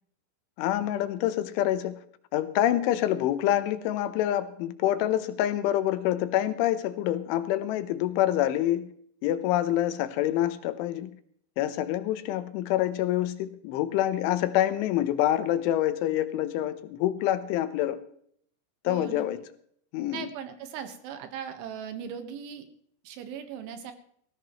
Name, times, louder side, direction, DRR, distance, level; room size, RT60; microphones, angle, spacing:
voice 1, 0.6-2.0 2.3-8.9 9.2-11.1 11.6-18.0 18.8-19.4 19.9-20.3, left 12 dB, 80° left, 12 dB, 3.2 m, -26 dB
voice 2, 18.9-19.3 20.1-22.7 23.1-23.9, right 8 dB, 75° right, 8 dB, 3.8 m, -38 dB
18.5 x 14.5 x 3.1 m, 0.64 s
omnidirectional pair, 5.6 m